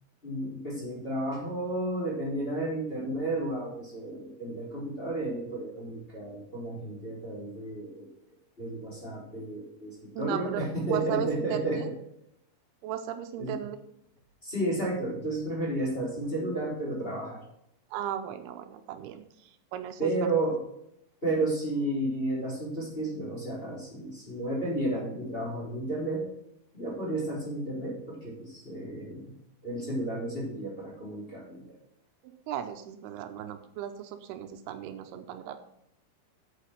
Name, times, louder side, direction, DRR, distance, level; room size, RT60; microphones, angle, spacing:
voice 1, 0.2-8.1 8.6-11.8 13.4-13.6 14.4-17.4 20.0-20.6 21.2-26.2 26.7-29.3 29.6-31.7, right 1 dB, 15° left, -5 dB, 3.7 m, -32 dB
voice 2, 10.2-11.9 12.8-13.8 17.9-20.3 32.2-35.6, right 10 dB, 80° right, 8 dB, 2.7 m, -36 dB
8.5 x 8.3 x 5.7 m, 0.76 s
omnidirectional pair, 4.5 m